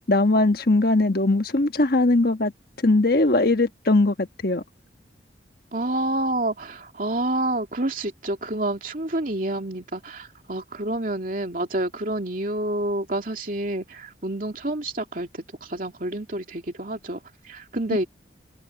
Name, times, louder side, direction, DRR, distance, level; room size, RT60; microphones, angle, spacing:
voice 1, 0.1-2.5 2.8-4.6, left 2 dB, 50° left, 1.4 m, -20 dB
voice 2, 5.7-15.3 15.6-18.1, right 1 dB, 45° right, 2.7 m, -28 dB
head